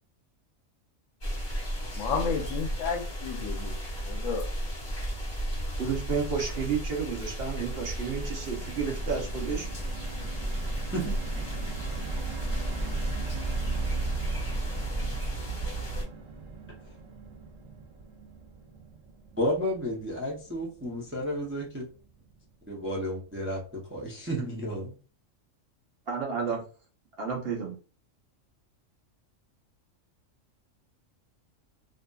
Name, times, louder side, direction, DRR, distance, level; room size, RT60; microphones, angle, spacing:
sound 1, 1.2-16.0, right 1 dB, 25° left, 1.3 m, -33 dB
voice 1, 2.0-4.5, left 6 dB, 80° left, 6 dB, 0.9 m, -32 dB
voice 2, 5.8-9.7 26.1-26.7 27.2-27.7, right 6 dB, 55° right, 0 dB, 0.8 m, -31 dB
sound 2, 6.8-23.0 23.4-23.5 23.8-24.0, right 3 dB, 85° right, 1.1 m, -42 dB
voice 3, 10.9-11.4 19.4-21.9 22.7-25.0, equal, 15° right, -3 dB, 0.4 m, -32 dB
2.7 x 2.5 x 2.2 m, 0.37 s
omnidirectional pair, 1.4 m